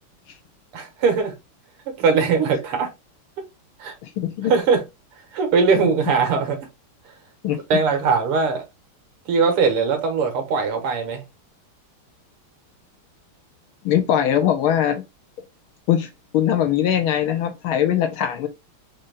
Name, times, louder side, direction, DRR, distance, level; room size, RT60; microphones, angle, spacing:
voice 1, 0.7-1.3 1.9-2.9 3.8-3.9 4.5-4.8 5.3-6.6 7.7-8.6 9.3-11.2, right 5 dB, 85° right, 2.1 m, -20 dB
voice 2, 4.0-4.5 7.4-7.6 13.8-15.0 15.9-18.5, left 10 dB, 75° left, 1.5 m, -21 dB
5.0 x 2.7 x 3.9 m
omnidirectional pair, 2.4 m